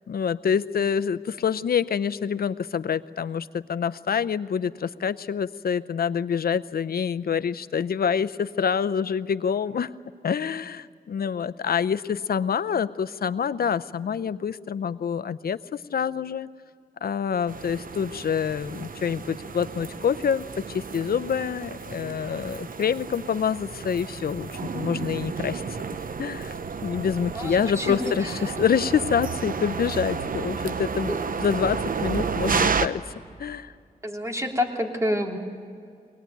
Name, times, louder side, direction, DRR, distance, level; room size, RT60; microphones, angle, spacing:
voice 1, 0.1-10.0 10.2-16.5 17.0-25.6 26.2-31.1 31.4-33.0 33.4-33.7, left 7 dB, 75° left, 14 dB, 0.6 m, -26 dB
sound 1, 17.5-32.9, right 5 dB, 60° right, 0.9 m, -31 dB
voice 2, 27.3-28.0 31.1-31.2 34.0-35.4, left 1 dB, 20° right, 1 dB, 3.1 m, -28 dB
23.0 x 19.0 x 9.2 m, 2.3 s
wide cardioid pair, 75°, 16 cm